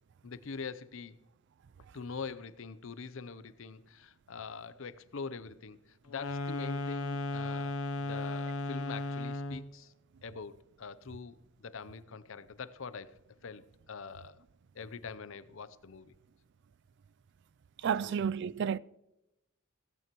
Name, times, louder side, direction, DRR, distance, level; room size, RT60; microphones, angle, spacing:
voice 1, 0.2-1.2 1.9-5.8 6.1-9.9 10.2-14.4 14.7-16.1 18.0-18.2, left 5 dB, 70° left, 0.7 m, -44 dB
sound 1, 6.1-9.7, left 2 dB, 90° left, 1.0 m, -35 dB
voice 2, 17.8-18.8, right 7 dB, 60° right, 0.4 m, -31 dB
16.5 x 15.5 x 3.0 m
head